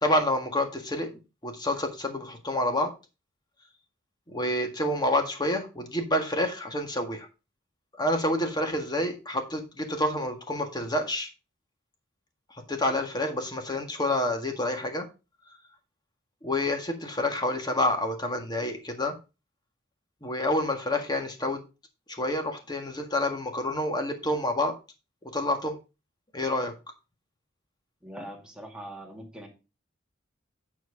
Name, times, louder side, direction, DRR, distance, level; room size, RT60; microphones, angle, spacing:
voice 1, 0.0-2.9 4.3-7.3 8.0-11.3 12.5-15.1 16.4-19.2 20.2-21.6 22.1-24.8 25.2-25.8 26.3-26.7, left 1 dB, 20° left, 1.7 m, -28 dB
voice 2, 28.0-29.5, right 1 dB, 5° right, 2.1 m, -42 dB
9.3 x 4.6 x 4.9 m
head